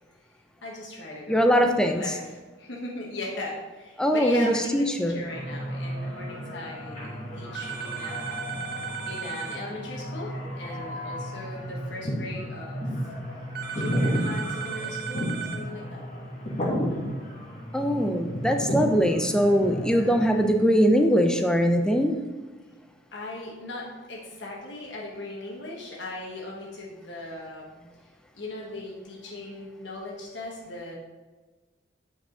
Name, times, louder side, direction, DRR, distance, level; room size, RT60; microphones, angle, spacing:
voice 1, 0.6-1.5 1.9-8.4 9.1-12.8 13.7-16.0 16.9-17.0 23.1-27.7 28.3-31.0, left 1 dB, 65° left, -3 dB, 1.2 m, -38 dB
voice 2, 1.3-2.0 4.0-5.2 17.7-22.2, equal, 5° left, 4 dB, 0.4 m, -22 dB
sound 1, 5.3-20.4, equal, 40° left, 1.8 m, -33 dB
sound 2, 7.5-9.6 13.6-15.6, right 8 dB, 50° right, 0.5 m, -35 dB
8.2 x 4.8 x 3.8 m, 1.3 s
head